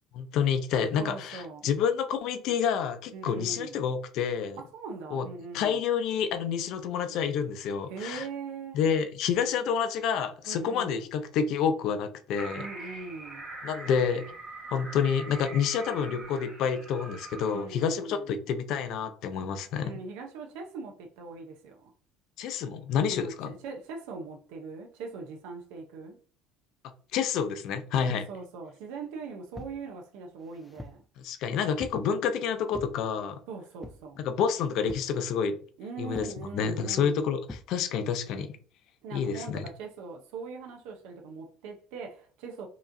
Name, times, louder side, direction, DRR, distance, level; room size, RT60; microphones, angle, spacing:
voice 1, 0.1-4.6 5.1-5.3 5.5-8.3 8.7-12.7 13.6-14.2 14.7-19.9 22.4-23.5 27.1-28.2 31.2-33.4 34.2-35.6 36.0-38.5 39.1-39.6, left 7 dB, 55° left, 0.6 m, -28 dB
voice 2, 1.0-1.7 3.1-3.8 4.6-5.8 7.9-8.8 10.5-11.1 12.5-13.5 17.5-18.3 19.8-21.9 23.1-26.2 28.0-31.0 33.5-34.3 35.8-37.3 39.0-42.7, right 4 dB, 80° right, 0.7 m, -41 dB
sound 1, 12.4-17.6, right 2 dB, 10° right, 1.8 m, -43 dB
sound 2, 29.5-29.8 30.4-31.1 31.8-32.1 32.7-33.0 33.8-34.1 34.9-35.2 36.1-36.4 37.5-37.7, left 1 dB, 10° left, 0.3 m, -43 dB
4.8 x 3.0 x 2.6 m
cardioid pair, 165°, 0 cm